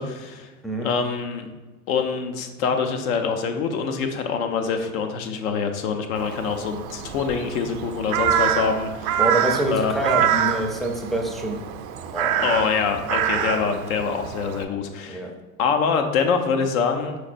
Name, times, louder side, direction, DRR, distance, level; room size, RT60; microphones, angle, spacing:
voice 1, 0.0-0.5 0.8-1.5 1.9-9.2 9.7-9.9 12.4-15.3 15.6-17.2, left 5 dB, 75° left, 6 dB, 0.7 m, -25 dB
Crow, 6.2-14.7, right 10 dB, 75° right, 0.5 m, -26 dB
voice 2, 9.2-11.6 12.1-12.5 15.1-15.3, right 1 dB, ahead, 1 dB, 0.5 m, -26 dB
4.9 x 4.1 x 2.5 m, 1.2 s
hypercardioid pair, 95°, 42 cm